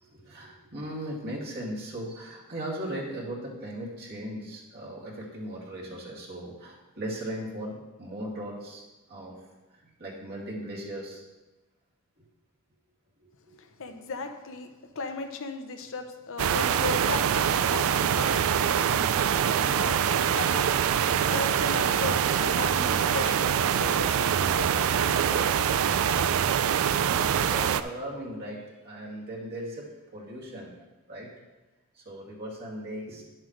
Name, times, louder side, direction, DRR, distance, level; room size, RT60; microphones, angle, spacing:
voice 1, 0.2-8.8 9.1-9.4 10.0-11.2 13.2-13.6 21.2-21.3 26.7-30.7 31.1-31.3 32.1-33.2, right 1 dB, 50° right, -4 dB, 2.3 m, -38 dB
voice 2, 13.6-25.5, left 3 dB, 65° left, 6 dB, 0.8 m, -37 dB
sound 1, 16.4-27.8, right 8 dB, 65° right, 0.4 m, -24 dB
10.5 x 7.5 x 3.2 m, 1.1 s
head